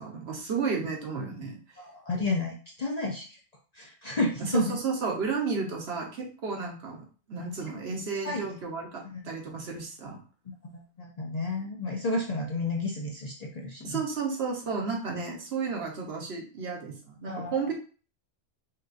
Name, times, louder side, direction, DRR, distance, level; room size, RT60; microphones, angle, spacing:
voice 1, 0.0-1.6 4.4-10.2 13.8-17.7, right 5 dB, 55° right, 0 dB, 1.3 m, -33 dB
voice 2, 1.8-3.4 3.7-4.8 8.2-8.5 9.1-9.2 10.5-14.0 17.3-17.7, left 2 dB, 50° left, -1 dB, 0.5 m, -31 dB
5.6 x 2.6 x 2.6 m, 0.38 s
omnidirectional pair, 1.4 m